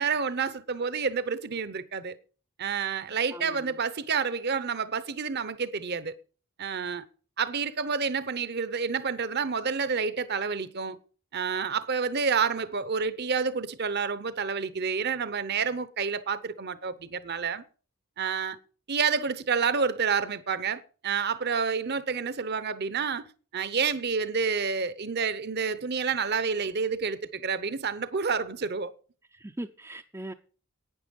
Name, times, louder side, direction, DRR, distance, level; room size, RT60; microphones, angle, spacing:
voice 1, 0.0-2.2 2.6-6.1 6.6-7.0 7.4-11.0 11.3-17.6 18.2-18.6 18.9-23.3 23.5-28.9, right 5 dB, 50° right, 0.8 m, -29 dB
voice 2, 3.3-3.7 29.3-30.3, right 1 dB, 10° right, 0.5 m, -40 dB
11.5 x 9.4 x 5.3 m
head